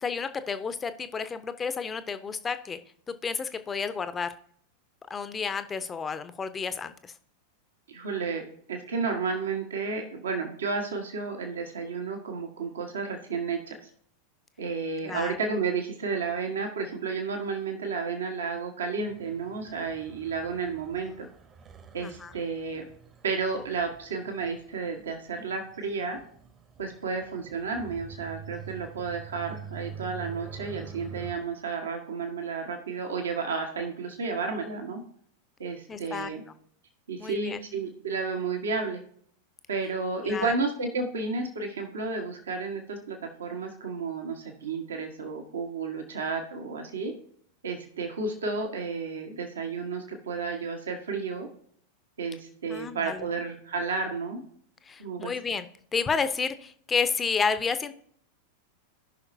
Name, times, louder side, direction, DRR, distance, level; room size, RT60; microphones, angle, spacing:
voice 1, 0.0-2.8 3.1-4.3 5.1-7.1 15.0-15.4 22.0-22.3 35.9-36.3 37.2-37.6 40.2-40.5 52.7-53.3 54.9-55.7 55.9-57.9, left 5 dB, 20° left, 11 dB, 0.7 m, -31 dB
voice 2, 7.9-13.9 14.6-21.3 21.9-22.8 23.2-26.2 26.8-35.0 35.6-36.4 37.1-39.0 39.7-47.1 47.6-51.5 52.2-54.4 55.0-55.3, right 4 dB, 65° right, 3 dB, 1.4 m, -32 dB
sound 1, 19.0-31.3, right 6 dB, 25° right, 1.1 m, -46 dB
16.5 x 5.8 x 2.7 m, 0.62 s
figure-of-eight pair, 90°, 0 cm